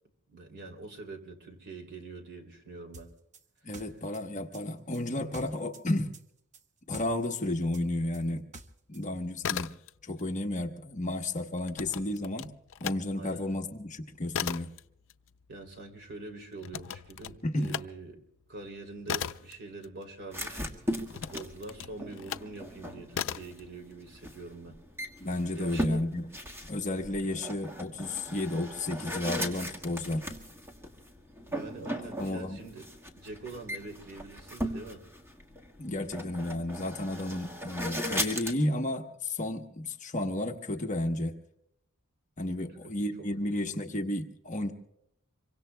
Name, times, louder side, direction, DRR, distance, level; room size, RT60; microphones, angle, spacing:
voice 1, 0.3-3.1 13.2-13.5 15.5-18.2 18.5-24.8 25.6-26.0 31.5-32.9 33.2-35.0 42.8-42.9, right 3 dB, 55° right, 3 dB, 2.9 m, -44 dB
sound 1, 2.9-5.9 6.1-9.0, right 3 dB, 35° right, 0.8 m, -50 dB
voice 2, 3.6-6.1 6.9-8.4 8.9-9.7 10.0-12.5 12.8-14.7 17.4-17.8 25.2-26.3 26.7-30.2 32.2-32.6 35.8-41.4 42.4-44.7, left 1 dB, 35° left, 4 dB, 1.0 m, -32 dB
sound 2, 9.2-10.2 10.5-13.0 13.4-20.4 21.1-22.6 23.1-23.6, left 9 dB, 60° left, 0.5 m, -38 dB
sound 3, 20.3-38.5, equal, 10° right, 1.5 m, -38 dB
26.5 x 23.5 x 2.2 m, 0.81 s
head